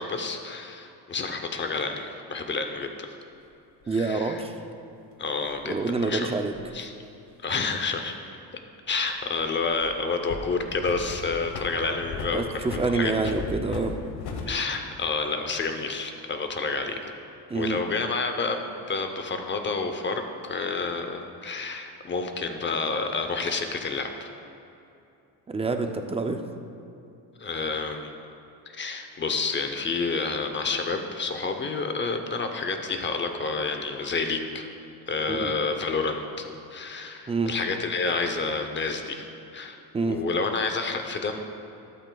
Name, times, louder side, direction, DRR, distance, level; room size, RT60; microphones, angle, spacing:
voice 1, 0.0-3.1 3.9-4.4 5.2-6.3 6.7-6.9 7.4-8.2 8.9-13.1 14.5-17.1 17.5-24.3 27.4-28.1 28.7-34.7 35.1-39.8 40.1-41.4, left 4 dB, 30° left, 6 dB, 0.7 m, -29 dB
sound 1, 3.8-3.9 5.5-6.7 9.0-9.9 10.3-14.5, left 3 dB, 85° left, 1.2 m, -37 dB
voice 2, 3.9-4.6 5.6-6.5 12.3-13.9 17.5-17.8 25.5-26.4 35.3-35.5 37.3-37.5 39.9-40.2, right 3 dB, 15° right, 6 dB, 0.4 m, -27 dB
13.0 x 12.5 x 2.3 m, 2.7 s
cardioid pair, 160°, 38 cm